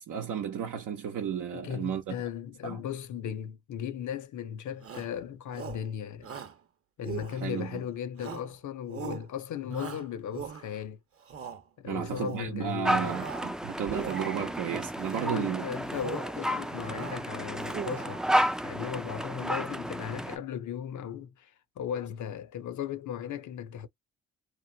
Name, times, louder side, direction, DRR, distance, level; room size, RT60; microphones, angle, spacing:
voice 1, 0.0-2.2 2.6-2.8 7.4-7.8 11.8-15.6, right 9 dB, 80° right, 0.7 m, -33 dB
voice 2, 1.5-6.4 7.0-11.0 11.8-13.2 15.2-18.3 18.6-23.9, left 9 dB, 70° left, 0.6 m, -37 dB
Shout, 4.8-5.2 5.5-5.9 6.2-6.6 7.0-7.7 8.2-8.6 8.9-9.3 9.7-10.8 11.2-11.6 12.0-12.5 12.9-13.5 13.8-14.5 15.0-15.4 15.8-16.4 16.7-17.2 17.5-18.3, right 7 dB, 45° right, 0.9 m, -40 dB
sound 1, 12.8-20.4, equal, ahead, 0.3 m, -32 dB
3.0 x 2.1 x 2.7 m
supercardioid pair, 50°, 31 cm